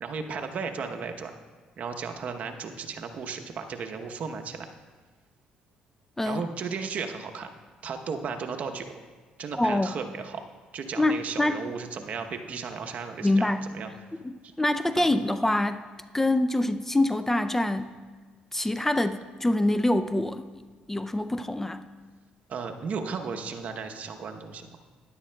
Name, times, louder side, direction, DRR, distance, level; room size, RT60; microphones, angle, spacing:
voice 1, 0.0-1.3 1.8-4.6 6.3-7.5 7.8-8.9 9.4-10.4 10.7-13.5 13.7-13.9 14.4-14.5 15.0-15.1 22.5-24.7, right 5 dB, 55° right, 5 dB, 0.8 m, -35 dB
voice 2, 9.5-10.0 11.0-11.6 13.2-13.7 14.2-15.8 16.1-17.9 18.5-21.9, left 1 dB, 10° left, 10 dB, 0.4 m, -25 dB
12.5 x 10.5 x 2.2 m, 1.4 s
supercardioid pair, 75°, 3 cm